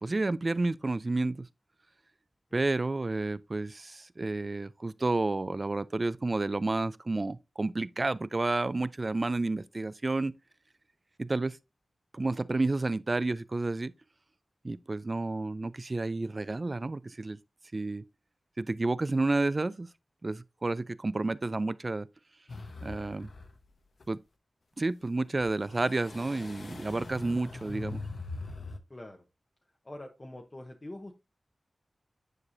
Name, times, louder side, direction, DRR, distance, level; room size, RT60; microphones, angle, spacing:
voice 1, 0.0-1.5 2.5-10.3 11.2-11.6 12.1-13.9 14.6-17.4 17.7-18.0 18.6-19.9 20.2-22.1 22.8-23.3 24.1-24.2 24.8-28.0, right 2 dB, 40° right, 0.3 m, -30 dB
sound 1, 22.5-23.6 24.0-24.1 25.4-28.8, left 3 dB, 75° left, 0.9 m, -42 dB
voice 2, 28.9-29.2 29.8-31.1, left 1 dB, 35° left, 0.8 m, -44 dB
9.8 x 4.7 x 2.6 m
cardioid pair, 55°, 0 cm